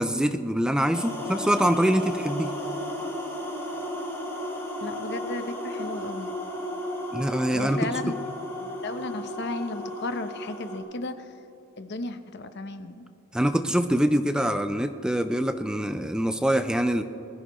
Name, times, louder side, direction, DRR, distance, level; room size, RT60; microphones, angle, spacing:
voice 1, 0.0-2.5 7.1-8.0 13.3-17.0, equal, 5° right, 9 dB, 0.4 m, -24 dB
sound 1, 0.9-10.8, equal, 15° left, 3.1 m, -34 dB
voice 2, 4.8-6.3 7.5-8.2 8.6-11.3 11.8-13.1, left 2 dB, 55° left, 10 dB, 0.8 m, -34 dB
21.0 x 15.0 x 3.1 m, 3.0 s
head